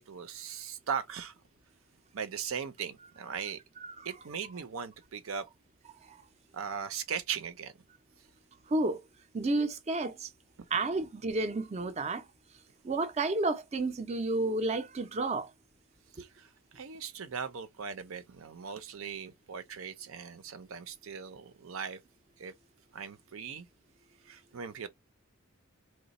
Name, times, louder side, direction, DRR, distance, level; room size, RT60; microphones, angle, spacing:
voice 1, 0.0-1.3 2.1-3.6 4.0-5.5 6.5-7.7 8.2-8.3 16.1-22.0 22.4-22.5 22.9-23.7 24.2-24.9, right 7 dB, 75° right, 0.6 m, -39 dB
voice 2, 8.7-9.0 9.3-10.3 10.7-12.2 12.8-15.5, right 2 dB, 30° right, 0.5 m, -31 dB
3.1 x 2.2 x 4.0 m
head